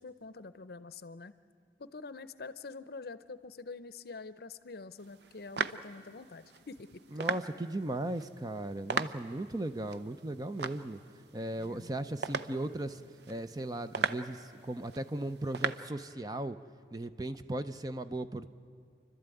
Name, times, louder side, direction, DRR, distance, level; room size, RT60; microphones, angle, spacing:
voice 1, 0.0-1.3 1.8-7.0 11.6-12.1, left 4 dB, 55° left, 14 dB, 0.6 m, -46 dB
sound 1, 5.0-15.8, right 5 dB, 65° right, 0.6 m, -40 dB
voice 2, 7.1-11.0 11.3-13.0 13.3-16.6 16.9-18.5, right 1 dB, 20° right, 10 dB, 0.5 m, -37 dB
29.5 x 12.5 x 9.1 m, 2.3 s
head